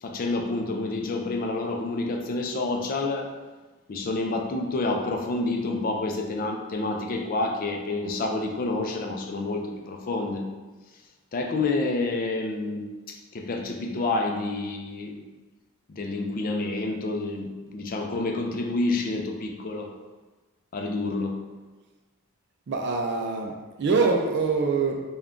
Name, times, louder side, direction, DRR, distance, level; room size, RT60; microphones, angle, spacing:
voice 1, 0.0-3.3 3.9-10.5 11.3-15.2 15.9-19.9 20.7-21.4, left 2 dB, 40° left, 2 dB, 0.4 m, -28 dB
voice 2, 22.7-25.0, right 4 dB, 55° right, 2 dB, 0.4 m, -24 dB
3.5 x 2.2 x 3.6 m, 1.2 s
head